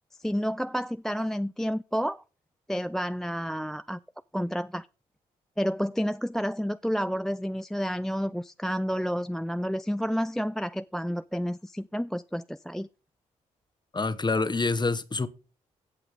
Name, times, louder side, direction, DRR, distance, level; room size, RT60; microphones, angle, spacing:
voice 1, 0.2-2.2 2.7-4.0 4.3-4.9 5.6-12.9, equal, 5° left, 0.4 m, -30 dB
voice 2, 13.9-15.3, left 3 dB, 25° left, 1.1 m, -26 dB
17.0 x 5.8 x 3.6 m
hypercardioid pair, 45°, 16 cm